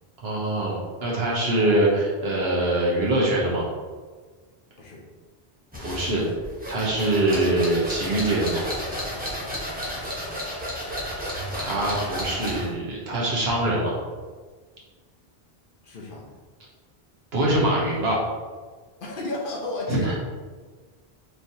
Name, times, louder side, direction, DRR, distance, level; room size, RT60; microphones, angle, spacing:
voice 1, 0.2-3.6 5.8-6.3 6.7-8.7 11.5-14.0 17.3-18.2 19.9-20.2, right 1 dB, 75° right, -4 dB, 1.2 m, -23 dB
sound 1, 5.7-12.7, equal, 10° right, 0.9 m, -32 dB
voice 2, 9.9-10.2 15.8-16.3 19.0-20.2, left 2 dB, 60° left, -1 dB, 0.8 m, -33 dB
Bowed string instrument, 11.3-13.7, right 1 dB, 50° right, 0.7 m, -45 dB
4.4 x 3.1 x 2.8 m, 1.4 s
omnidirectional pair, 1.1 m